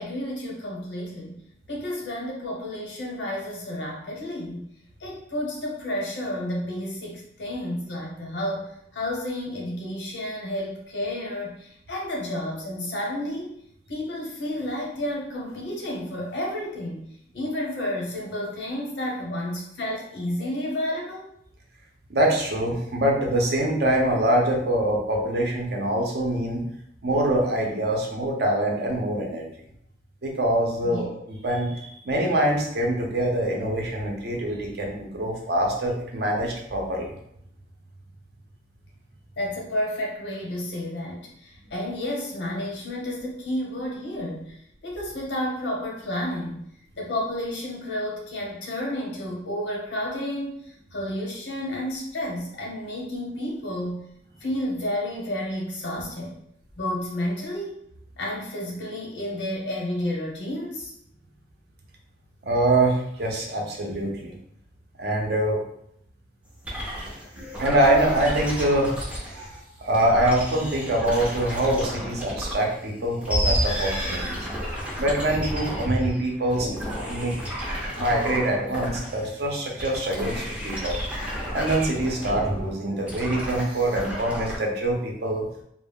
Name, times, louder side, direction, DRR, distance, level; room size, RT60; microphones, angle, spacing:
voice 1, 0.0-1.4 1.7-4.7 5.0-13.5 13.9-21.3 30.8-31.1 39.4-46.6 47.0-54.0 54.4-56.4 56.8-57.8 58.2-60.9, left 1 dB, 80° left, -2 dB, 0.9 m, -31 dB
voice 2, 22.1-26.6 27.0-29.5 30.2-37.1 62.4-64.3 65.0-65.6 67.6-68.9 69.8-74.5 75.0-77.3 78.0-80.9 81.5-85.4, right 1 dB, 60° right, 0 dB, 0.6 m, -24 dB
sound 1, 66.6-69.6 69.9-72.7 73.1-79.4 79.8-84.6, equal, 5° right, 0.4 m, -31 dB
2.2 x 2.0 x 3.4 m, 0.72 s
head